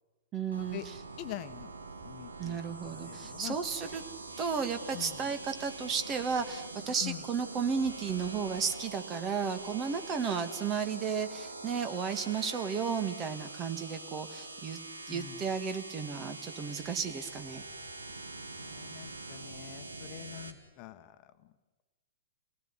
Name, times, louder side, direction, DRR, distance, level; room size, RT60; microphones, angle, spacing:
voice 1, 0.3-1.0 2.4-4.0 4.4-14.8 15.1-17.6, right 6 dB, 25° right, 8 dB, 2.5 m, -33 dB
sound 1, 0.5-20.5, right 2 dB, 75° right, 2.6 m, -44 dB
voice 2, 1.2-1.7 2.0-3.6 4.9-5.3 7.0-7.2 15.1-15.5 18.6-21.3, left 14 dB, 35° left, 9 dB, 1.4 m, -44 dB
29.0 x 18.5 x 10.0 m, 1.3 s
figure-of-eight pair, 105°, 0 cm